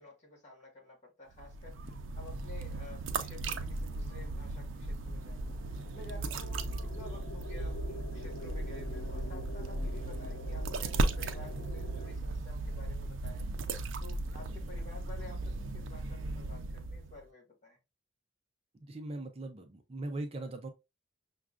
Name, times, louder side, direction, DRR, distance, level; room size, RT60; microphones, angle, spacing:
voice 1, 0.0-5.4 5.9-13.5 14.0-17.8, left 2 dB, 35° left, 1.6 m, -52 dB
sound 1, 1.3-17.2, right 2 dB, 85° right, 0.5 m, -36 dB
sound 2, 5.1-12.2, left 1 dB, 90° left, 1.0 m, -47 dB
voice 2, 18.8-20.7, right 2 dB, 30° right, 0.4 m, -40 dB
6.0 x 2.3 x 2.4 m
head